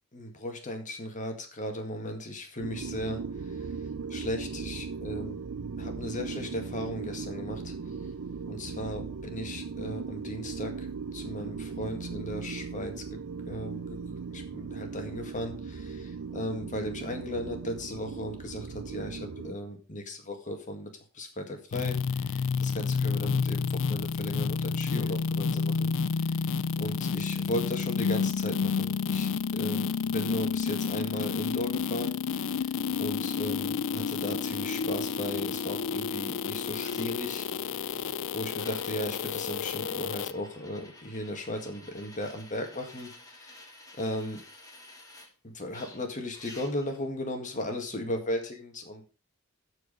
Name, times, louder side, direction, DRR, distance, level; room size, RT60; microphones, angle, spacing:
voice 1, 0.1-3.2 4.1-5.4 5.8-7.7 8.5-10.7 11.1-12.9 13.5-13.8 14.3-20.9 21.1-22.0 22.3-25.9 26.8-32.7 33.0-37.5 37.8-38.0 38.3-43.7 44.0-44.4 45.4-49.0, left 1 dB, 35° left, 5 dB, 2.0 m, -36 dB
sound 1, 2.6-19.5, right 5 dB, 65° right, 0.5 m, -38 dB
sound 2, 21.7-40.3, left 5 dB, 60° left, 0.4 m, -30 dB
sound 3, 36.9-37.0 38.0-38.1 38.6-45.3 45.7-47.0 47.7-47.8, left 2 dB, 15° left, 1.9 m, -51 dB
14.0 x 4.8 x 5.1 m, 0.34 s
head